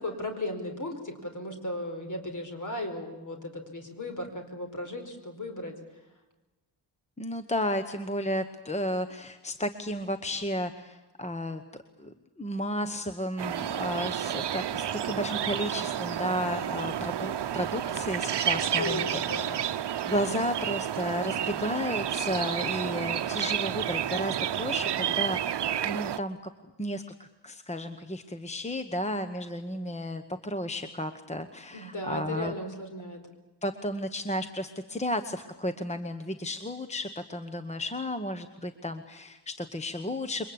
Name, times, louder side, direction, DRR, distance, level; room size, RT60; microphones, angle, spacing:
voice 1, 0.0-5.7 18.8-19.6 31.7-33.3, left 1 dB, 45° left, 5 dB, 4.8 m, -36 dB
voice 2, 7.2-11.6 12.0-19.7 20.0-26.4 26.8-32.5 33.6-40.5, left 1 dB, 15° left, 9 dB, 1.0 m, -33 dB
sound 1, 13.4-26.2, right 10 dB, 70° right, 0.8 m, -30 dB
28.0 x 23.0 x 8.6 m, 1.1 s
wide cardioid pair, 170°, 43 cm